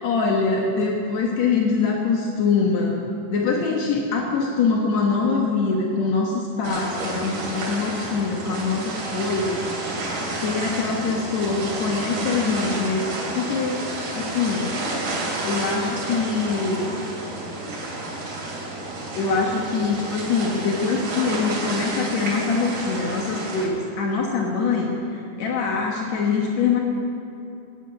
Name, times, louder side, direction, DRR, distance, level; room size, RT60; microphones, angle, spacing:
voice 1, 0.0-9.6 10.4-13.1 13.3-13.8 14.1-14.7 15.4-16.9 19.1-26.8, left 4 dB, 70° left, -1 dB, 1.6 m, -24 dB
sound 1, 6.6-23.7, right 2 dB, 60° right, 4.9 m, -30 dB
17.0 x 8.7 x 8.9 m, 2.8 s
omnidirectional pair, 5.0 m